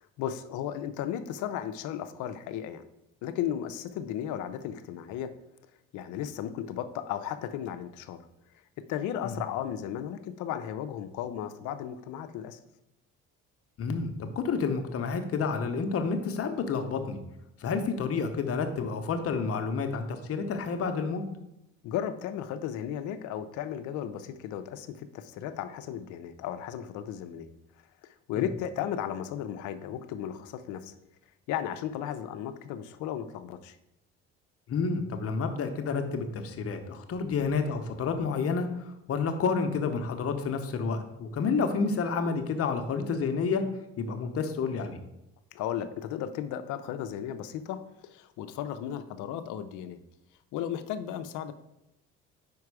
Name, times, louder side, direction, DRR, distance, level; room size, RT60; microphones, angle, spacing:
voice 1, 0.2-2.8 3.2-5.3 5.9-8.2 8.8-12.6 21.8-27.5 28.0-30.9 31.5-33.8 45.5-50.0 50.5-51.5, left 10 dB, 75° left, 10 dB, 0.6 m, -35 dB
voice 2, 13.8-17.2 17.6-21.2 28.3-28.5 34.7-43.6 44.0-45.0, left 5 dB, 50° left, 6 dB, 0.9 m, -30 dB
5.3 x 4.7 x 4.8 m, 0.89 s
supercardioid pair, 80°, 31 cm